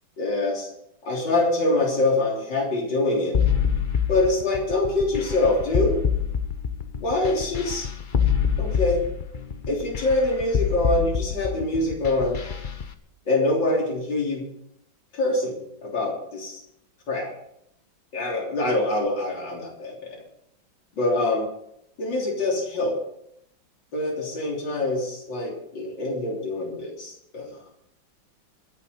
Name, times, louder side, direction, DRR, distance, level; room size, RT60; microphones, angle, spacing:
voice 1, 0.2-0.7 1.0-3.4 4.1-6.0 7.0-7.9 8.6-9.1 9.7-12.4 13.3-14.4 15.1-15.6 15.8-16.6 17.1-17.3 18.1-20.2 21.0-21.5 22.0-23.0 23.9-27.5, left 2 dB, 65° left, -2 dB, 4.2 m, -24 dB
sound 1, 3.3-12.9, left 7 dB, 35° left, 0.8 m, -26 dB
23.5 x 8.5 x 5.6 m, 0.75 s
omnidirectional pair, 2.1 m